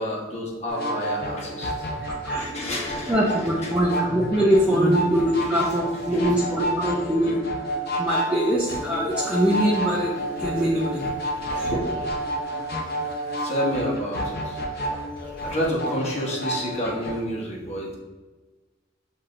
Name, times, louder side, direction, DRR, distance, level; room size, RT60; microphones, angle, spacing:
voice 1, 0.0-1.9 2.2-3.2 3.6-3.7 4.7-5.0 5.4-5.6 6.1-6.5 11.4-12.0 13.4-14.6 15.4-18.0, equal, 35° left, -4 dB, 1.1 m, -29 dB
sound 1, 0.7-17.2, equal, 55° left, 0.7 m, -30 dB
voice 2, 2.0-2.5 3.1-7.4 8.0-10.1 10.4-11.1 11.6-11.7 13.3-13.4 14.9-15.0, right 1 dB, 5° right, -5 dB, 0.5 m, -23 dB
7.4 x 2.8 x 2.5 m, 1.2 s
head